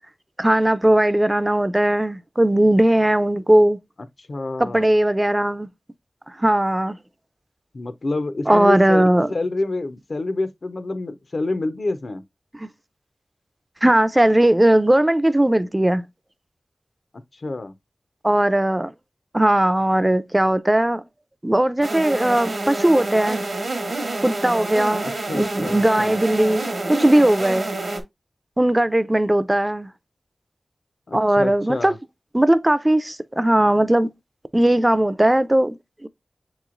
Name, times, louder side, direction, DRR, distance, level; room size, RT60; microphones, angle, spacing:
voice 1, 0.4-3.8 4.6-5.7 6.4-7.0 8.5-9.3 12.6-12.7 13.8-16.0 18.2-18.9 19.3-21.0 21.4-23.4 24.2-25.1 25.3-27.7 28.6-29.9 31.1-31.9 32.3-34.1 34.5-36.1, right 1 dB, 20° right, 0.3 m, -18 dB
voice 2, 4.3-4.8 7.7-9.0 9.3-12.2 17.4-17.7 25.0-26.2 31.1-31.9, left 2 dB, 60° left, 0.4 m, -27 dB
sound 1, 21.8-28.0, right 2 dB, 65° right, 0.8 m, -28 dB
6.8 x 3.0 x 2.4 m
wide cardioid pair, 70°, 0 cm